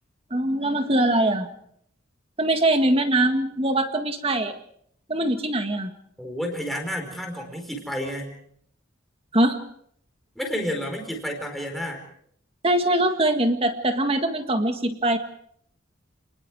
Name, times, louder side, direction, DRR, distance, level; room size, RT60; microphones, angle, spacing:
voice 1, 0.3-1.5 2.4-4.6 5.1-5.9 9.3-9.6 12.6-15.2, right 1 dB, 25° right, 7 dB, 1.8 m, -22 dB
voice 2, 6.2-8.4 10.3-12.0, equal, ahead, 2 dB, 4.6 m, -30 dB
29.5 x 20.0 x 4.8 m, 0.66 s
head